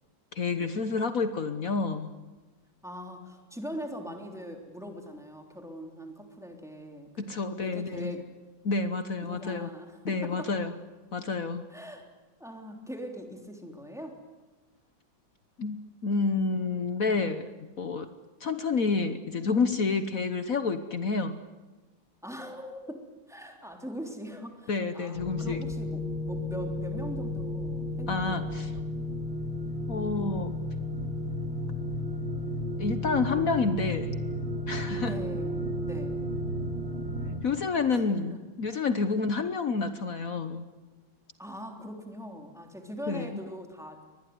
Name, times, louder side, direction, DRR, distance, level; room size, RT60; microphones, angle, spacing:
voice 1, 0.3-2.1 7.2-8.2 8.6-9.7 10.0-10.7 11.1-11.7 15.6-18.1 18.4-21.4 24.7-25.6 28.1-28.7 29.9-30.6 32.8-34.1 34.7-35.1 37.4-40.6 43.1-43.4, left 4 dB, 50° left, 10 dB, 1.3 m, -29 dB
voice 2, 2.8-8.3 9.2-10.5 11.7-12.1 12.4-14.2 22.2-28.8 35.0-36.2 37.9-38.0 38.3-38.4 41.4-44.0, equal, ahead, 3 dB, 3.4 m, -41 dB
sound 1, 25.1-37.4, left 1 dB, 80° right, 3.6 m, -33 dB
23.5 x 20.5 x 9.6 m, 1.2 s
omnidirectional pair, 2.1 m